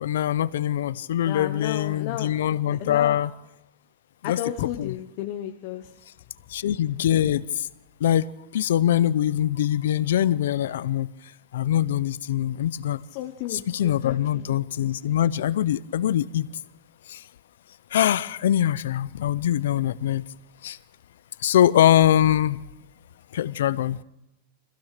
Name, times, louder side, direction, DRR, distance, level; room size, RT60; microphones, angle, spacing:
voice 1, 0.0-3.3 4.2-4.4 4.8-4.9 6.5-7.7 8.0-11.1 11.5-13.0 13.5-16.5 17.1-17.2 17.9-20.2 20.6-20.8 21.4-22.6 23.3-24.0, left 11 dB, 85° left, 0.7 m, -23 dB
voice 2, 1.2-2.3 2.8-3.2 4.2-5.9 13.1-14.5, left 12 dB, 40° left, 1.1 m, -33 dB
25.0 x 15.5 x 6.7 m
supercardioid pair, 175°, 0 cm